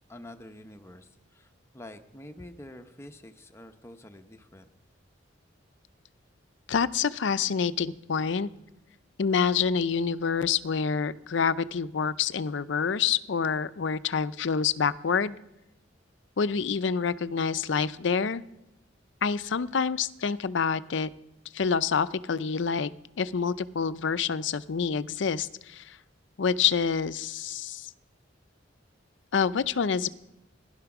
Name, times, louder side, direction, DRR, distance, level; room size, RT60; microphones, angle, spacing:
voice 1, 0.1-4.7, left 1 dB, 15° left, 6 dB, 0.7 m, -47 dB
voice 2, 6.7-8.5 9.2-15.3 16.4-18.4 19.2-21.1 21.5-22.9 23.2-26.0 26.4-27.9 29.3-30.1, left 6 dB, 70° left, 16 dB, 0.5 m, -27 dB
16.0 x 11.5 x 6.0 m, 0.93 s
head